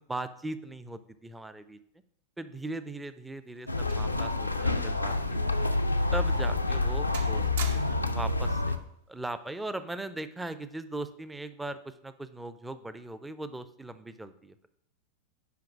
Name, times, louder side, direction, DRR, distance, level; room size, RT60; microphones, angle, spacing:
voice 1, 0.1-1.8 2.4-5.7 6.1-8.7 9.1-14.6, right 2 dB, 5° right, 12 dB, 0.5 m, -39 dB
sound 1, 2.8-4.9 5.2-5.4 6.0-6.2 6.6-6.9 7.1-8.2 9.2-9.5, right 6 dB, 60° right, 0.8 m, -43 dB
sound 2, 3.7-8.8, left 3 dB, 85° left, 0.5 m, -28 dB
5.8 x 5.0 x 6.1 m, 0.72 s
figure-of-eight pair, 90°, 0 cm